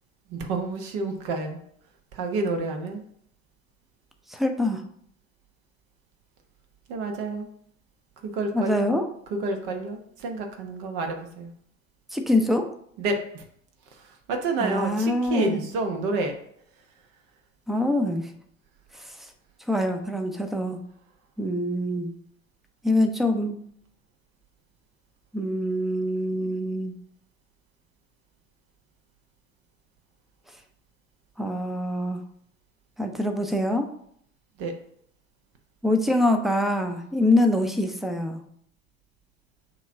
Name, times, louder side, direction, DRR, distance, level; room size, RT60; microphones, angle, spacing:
voice 1, 0.3-1.6 2.1-3.0 6.9-7.5 8.2-8.9 9.3-11.5 13.0-13.4 14.0-16.3 34.6-34.7, right 3 dB, 55° right, 4 dB, 1.1 m, -29 dB
voice 2, 4.3-4.8 8.5-9.0 12.1-12.7 14.6-15.6 17.7-18.3 18.9-19.3 19.7-20.8 21.4-22.1 22.8-23.6 25.3-26.9 31.4-32.2 33.0-33.9 35.8-38.4, left 1 dB, ahead, 6 dB, 0.6 m, -24 dB
6.9 x 3.0 x 4.8 m, 0.68 s
figure-of-eight pair, 70°, 37 cm